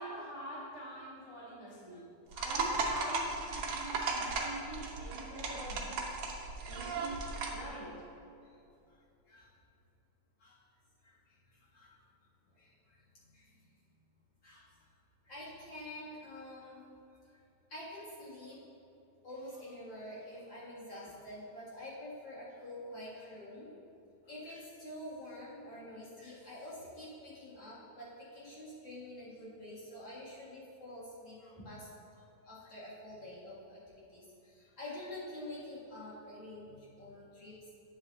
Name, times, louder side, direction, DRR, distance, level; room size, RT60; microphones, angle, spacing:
voice 1, 0.0-2.0 2.3-6.1 6.6-7.9, right 1 dB, 20° right, -6 dB, 0.6 m, -45 dB
voice 2, 1.7-2.0 3.7-3.8 4.1-4.4 5.8-6.2 6.8-6.9 8.4-8.6 8.9-9.0 9.3-9.5 10.4-10.6 11.0-12.1 12.5-13.7 14.4-14.9 15.2-16.8 17.3-17.4 17.7-18.6 19.2-23.7 24.2-37.6, left 1 dB, 45° left, -8 dB, 2.0 m, -48 dB
sound 1, 2.3-7.6, right 3 dB, 70° right, 1.5 m, -36 dB
10.5 x 7.7 x 2.7 m, 2.7 s
omnidirectional pair, 3.4 m